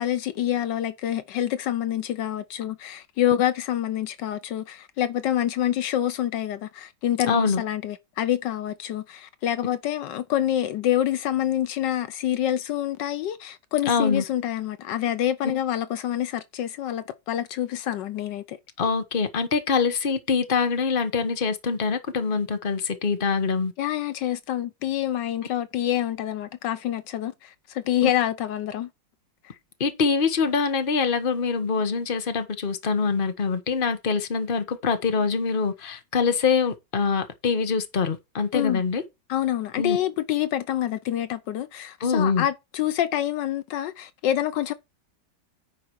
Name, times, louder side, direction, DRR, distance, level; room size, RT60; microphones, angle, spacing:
voice 1, 0.0-18.6 23.8-28.9 38.5-38.8 39.3-44.7, left 11 dB, 75° left, 1.4 m, -27 dB
voice 2, 7.3-7.6 13.9-14.2 18.8-23.7 28.0-28.1 29.8-39.0 39.8-40.0 42.0-42.5, left 5 dB, 35° left, 1.3 m, -24 dB
9.8 x 4.8 x 4.6 m
omnidirectional pair, 1.9 m